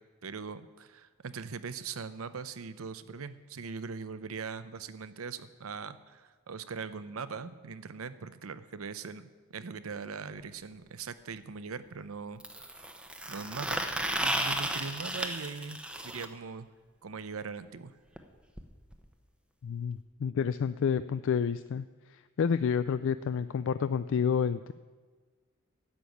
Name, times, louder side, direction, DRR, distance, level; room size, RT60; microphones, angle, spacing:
voice 1, 0.2-12.8 13.3-13.9 14.2-16.7 17.0-18.0, right 5 dB, 80° right, 13 dB, 0.7 m, -41 dB
sound 1, 10.4-10.5 12.4-16.2 18.2-18.3 18.6-18.7 18.9-19.0 20.0-20.1, right 1 dB, 5° right, 0.9 m, -34 dB
voice 2, 19.6-21.8 22.1-24.7, left 7 dB, 65° left, 13 dB, 0.3 m, -29 dB
11.5 x 7.2 x 9.3 m, 1.4 s
head